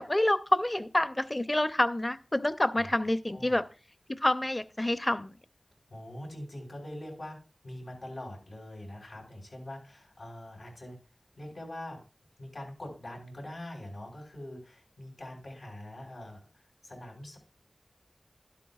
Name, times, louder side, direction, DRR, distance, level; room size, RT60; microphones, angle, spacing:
voice 1, 0.0-3.6 4.1-5.3, left 1 dB, 30° left, 12 dB, 0.7 m, -27 dB
voice 2, 5.9-7.4 7.6-11.0 11.4-12.0 12.4-17.4, left 1 dB, 90° left, 0 dB, 5.0 m, -43 dB
12.0 x 11.5 x 2.4 m, 0.34 s
wide cardioid pair, 60°, 0 cm